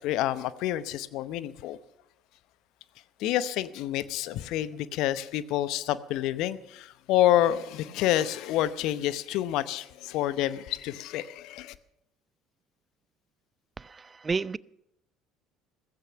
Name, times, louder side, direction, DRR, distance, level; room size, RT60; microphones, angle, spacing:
voice 1, 0.0-1.8 3.2-11.7, left 13 dB, 60° left, 0.8 m, -28 dB
voice 2, 13.8-14.6, right 4 dB, 25° right, 0.5 m, -31 dB
15.5 x 15.0 x 5.7 m
hypercardioid pair, 60°, 0 cm